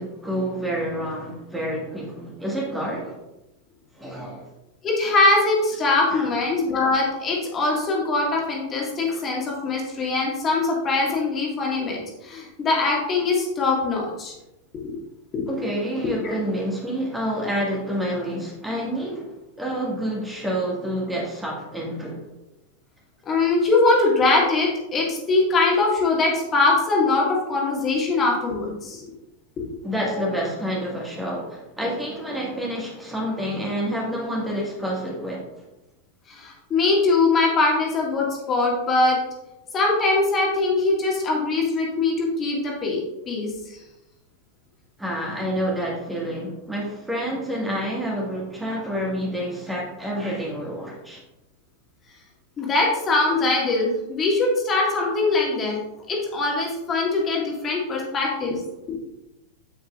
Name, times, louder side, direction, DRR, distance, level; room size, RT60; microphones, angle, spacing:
voice 1, 0.0-3.2 4.0-4.5 6.1-6.3 9.1-9.2 15.5-22.3 29.8-35.5 45.0-51.2, equal, 5° right, -3 dB, 1.7 m, -28 dB
voice 2, 4.8-14.3 14.8-15.0 15.3-15.5 16.0-16.1 23.3-29.0 36.3-39.2 39.7-43.0 43.3-43.8 52.6-55.8 56.1-58.6 58.9-59.0, left 3 dB, 25° left, -2 dB, 1.8 m, -22 dB
8.3 x 7.8 x 2.4 m, 0.96 s
figure-of-eight pair, 90°, 0 cm